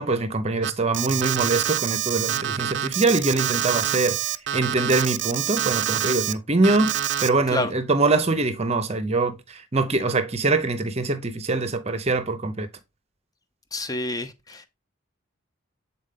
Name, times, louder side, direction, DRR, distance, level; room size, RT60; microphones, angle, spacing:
voice 1, 0.0-12.7, right 3 dB, 30° right, 0.7 m, -23 dB
Alarm, 0.6-6.3 6.6-7.3, right 11 dB, 60° right, 0.4 m, -26 dB
voice 2, 13.7-14.7, left 2 dB, 20° left, 0.6 m, -28 dB
7.9 x 4.2 x 3.7 m
head